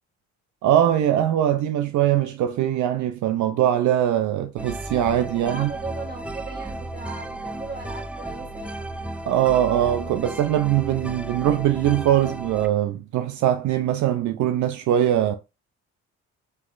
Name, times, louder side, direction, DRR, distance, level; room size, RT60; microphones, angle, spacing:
voice 1, 0.6-5.7 9.3-15.4, right 11 dB, 75° right, 0.5 m, -21 dB
sound 1, 4.6-12.7, right 1 dB, 5° right, 0.3 m, -34 dB
voice 2, 5.3-8.9, right 3 dB, 30° right, 1.9 m, -37 dB
5.7 x 3.0 x 2.5 m
cardioid pair, 90°, 30 cm